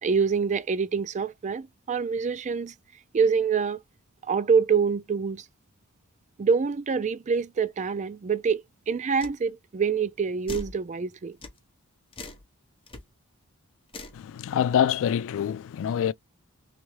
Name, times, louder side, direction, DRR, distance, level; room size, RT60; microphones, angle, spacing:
voice 1, 0.0-2.7 3.1-3.8 4.2-5.4 6.4-11.4, right 5 dB, 35° right, 0.4 m, -26 dB
sound 1, 9.2-9.4 10.5-10.8 11.4-11.6 12.1-12.4 12.9-13.0 13.9-14.2, left 2 dB, 25° left, 1.0 m, -39 dB
voice 2, 14.1-16.1, left 9 dB, 60° left, 0.3 m, -25 dB
3.4 x 3.3 x 3.2 m
head